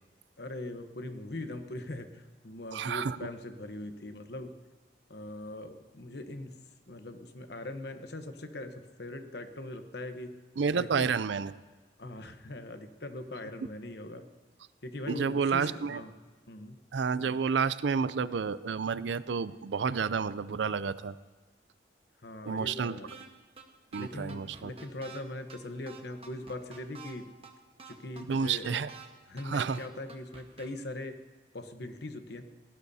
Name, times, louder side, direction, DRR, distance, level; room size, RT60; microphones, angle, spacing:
voice 1, 0.4-4.6 5.1-6.6 6.9-10.4 10.7-11.1 12.0-14.3 14.8-16.1 16.5-16.8 22.2-23.1 24.0-27.3 27.8-28.8 29.3-31.2 31.5-32.4, left 1 dB, 65° left, 7 dB, 1.0 m, -41 dB
voice 2, 2.7-3.2 10.6-11.5 15.1-16.0 16.9-21.2 22.4-22.9 23.9-24.7 28.3-28.9 29.4-29.8, right 5 dB, 80° right, 16 dB, 0.4 m, -30 dB
sound 1, 23.1-23.3 23.6-23.7 23.9-25.2 25.5-25.6 25.9-27.1 27.4-27.5 27.8-29.1 29.4-29.5 29.7-30.7, right 5 dB, 30° right, 1.2 m, -48 dB
18.5 x 17.0 x 2.8 m, 1.3 s
head